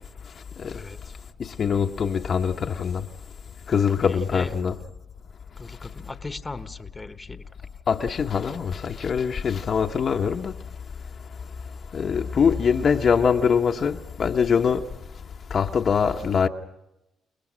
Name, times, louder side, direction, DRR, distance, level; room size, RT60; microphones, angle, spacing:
voice 1, 0.7-1.1 4.0-4.5 5.6-7.4, left 3 dB, 20° left, 1.2 m, -38 dB
voice 2, 1.6-3.0 3.7-4.7 7.9-10.5 11.9-14.8 15.5-16.5, left 6 dB, 50° left, 1.0 m, -23 dB
29.5 x 19.0 x 6.3 m
cardioid pair, 90°, 0 cm